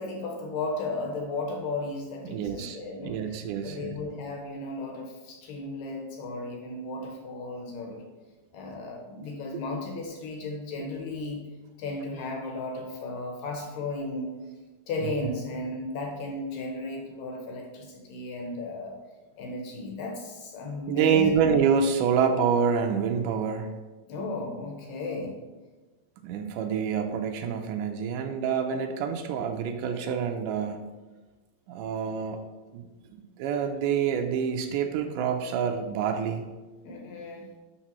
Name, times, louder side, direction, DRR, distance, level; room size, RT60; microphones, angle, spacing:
voice 1, 0.0-3.2 3.6-8.0 8.5-11.4 11.8-14.3 14.9-18.9 19.4-21.5 24.1-25.4 36.8-37.5, left 2 dB, 75° left, 1 dB, 2.4 m, -35 dB
voice 2, 2.2-4.0 9.5-9.6 15.0-15.1 20.9-23.7 26.2-30.9 31.7-32.4 32.7-32.9 33.1-36.4, right 7 dB, 85° right, 5 dB, 1.8 m, -27 dB
11.5 x 4.4 x 3.0 m, 1.2 s
omnidirectional pair, 4.2 m